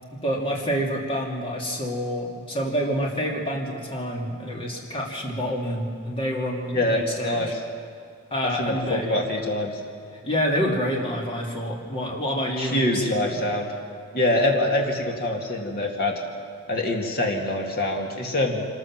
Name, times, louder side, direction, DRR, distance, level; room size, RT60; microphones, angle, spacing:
voice 1, 0.1-7.5 8.3-9.2 10.2-13.4, equal, 25° left, -1 dB, 2.7 m, -28 dB
voice 2, 6.7-7.6 8.4-9.8 12.6-13.7 14.1-16.2 16.7-18.7, left 1 dB, 45° left, 1 dB, 2.3 m, -25 dB
25.5 x 13.5 x 7.5 m, 2.3 s
head